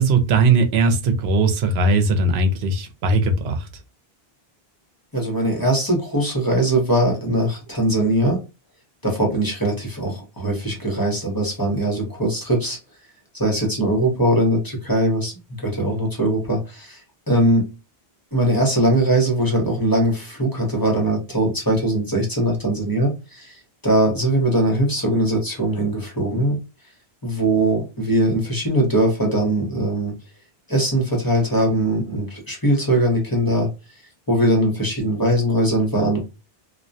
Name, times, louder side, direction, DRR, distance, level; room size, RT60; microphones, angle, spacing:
voice 1, 0.0-3.7, right 3 dB, 85° right, 0.8 m, -19 dB
voice 2, 5.1-8.4 9.0-12.8 13.3-17.0 17.3-17.7 18.3-26.6 27.2-30.1 30.7-33.7 34.3-36.2, right 1 dB, 25° left, 0.8 m, -21 dB
2.2 x 2.2 x 2.5 m
omnidirectional pair, 1.0 m